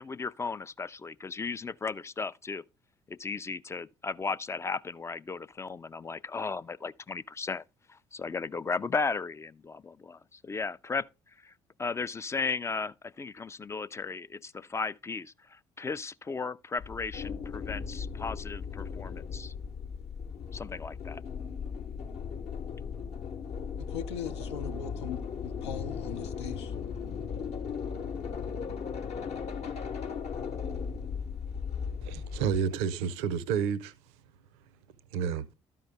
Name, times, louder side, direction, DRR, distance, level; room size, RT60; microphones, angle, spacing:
voice 1, 0.0-2.6 3.1-7.6 7.9-11.1 11.4-11.5 11.8-19.5 20.5-21.2, left 4 dB, 20° left, 0.3 m, -35 dB
sound 1, 16.8-32.6, left 6 dB, 50° left, 0.8 m, -37 dB
voice 2, 23.9-26.7, left 7 dB, 80° left, 0.6 m, -39 dB
voice 3, 32.0-33.9 35.1-35.4, right 7 dB, 70° right, 0.6 m, -30 dB
12.5 x 5.4 x 3.3 m
figure-of-eight pair, 50°, 14 cm